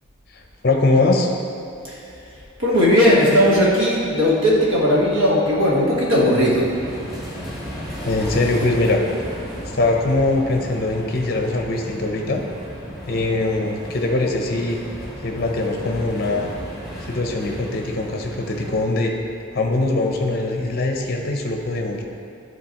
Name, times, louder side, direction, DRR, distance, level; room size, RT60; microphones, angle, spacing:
voice 1, 0.3-1.3 8.1-9.0 9.7-12.4 13.1-14.8 15.2-16.5 17.1-19.1 19.5-22.0, left 2 dB, 45° left, 2 dB, 0.6 m, -22 dB
voice 2, 2.6-6.9, equal, 70° right, -4 dB, 1.4 m, -17 dB
sound 1, 6.6-18.8, equal, 5° right, 1.2 m, -34 dB
10.0 x 3.8 x 2.9 m, 2.7 s
head